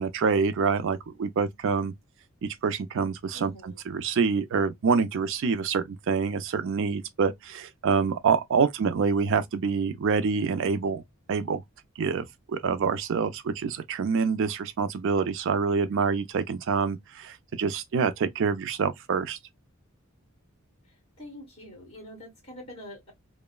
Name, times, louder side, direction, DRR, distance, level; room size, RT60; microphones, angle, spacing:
voice 1, 0.0-1.9 2.4-11.0 11.3-11.6 12.0-19.4, right 5 dB, 60° right, 0.4 m, -26 dB
voice 2, 3.3-3.8 21.2-23.1, left 1 dB, 25° left, 1.8 m, -45 dB
2.9 x 2.1 x 2.2 m
head